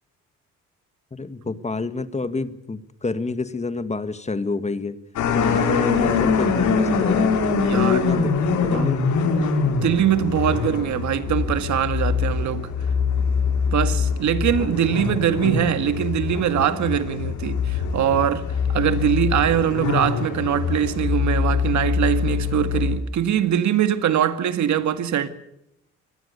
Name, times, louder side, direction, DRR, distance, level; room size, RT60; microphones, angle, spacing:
voice 1, 1.1-5.0 5.3-7.3 7.7-8.3 8.6-9.1, left 3 dB, 20° left, 1.8 m, -28 dB
sound 1, 5.2-23.0, left 5 dB, 75° left, 5.1 m, -23 dB
voice 2, 7.6-8.1 8.7-8.9 9.6-12.7 13.7-25.3, right 9 dB, 70° right, 1.9 m, -22 dB
24.0 x 18.5 x 6.8 m
cardioid pair, 90°, 30 cm